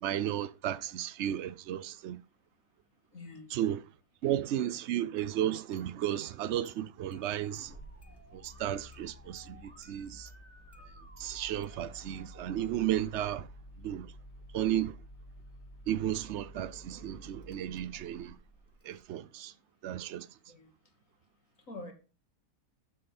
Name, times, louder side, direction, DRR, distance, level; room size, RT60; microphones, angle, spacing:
voice 1, 0.0-2.2 3.5-3.8 4.2-7.8 8.3-10.3 11.2-13.5 13.8-14.1 14.5-14.9 15.9-18.4 18.8-19.5 19.8-20.3, right 11 dB, 90° right, 0.6 m, -33 dB
voice 2, 3.1-3.5 20.5-20.7 21.7-21.9, left 2 dB, 50° left, 2.8 m, -45 dB
Engine starting, 5.2-5.3 5.7-6.3 6.6-6.7 7.1-19.0, equal, 15° left, 1.2 m, -52 dB
Musical instrument, 7.3-12.8, right 1 dB, 5° right, 1.5 m, -59 dB
9.5 x 7.7 x 4.1 m
omnidirectional pair, 1.8 m